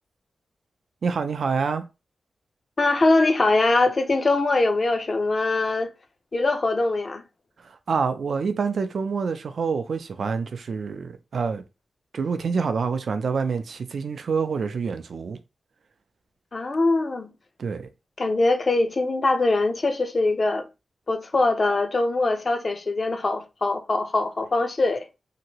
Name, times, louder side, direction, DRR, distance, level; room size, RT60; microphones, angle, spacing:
voice 1, 1.0-1.8 7.6-11.6 12.1-15.4 17.6-17.9, right 5 dB, 65° right, 0.4 m, -27 dB
voice 2, 2.8-5.9 6.3-7.2 16.5-17.3 18.2-20.7 21.1-25.0, left 2 dB, 40° left, 0.5 m, -22 dB
2.9 x 2.6 x 2.9 m
wide cardioid pair, 105°, 0 cm